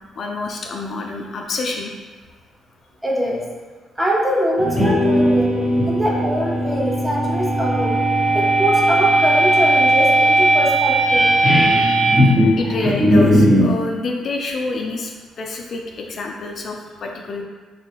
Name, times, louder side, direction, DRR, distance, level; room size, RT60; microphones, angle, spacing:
voice 1, 0.2-1.9 12.6-15.1 15.4-17.4, left 3 dB, 55° left, 1 dB, 0.3 m, -27 dB
voice 2, 3.0-3.4 4.0-5.5 5.9-8.0 8.3-11.3, equal, 10° right, -4 dB, 0.7 m, -22 dB
sound 1, 4.6-13.7, right 1 dB, 45° right, 0.9 m, -17 dB
3.2 x 2.3 x 2.9 m, 1.4 s
cardioid pair, 90°, 0 cm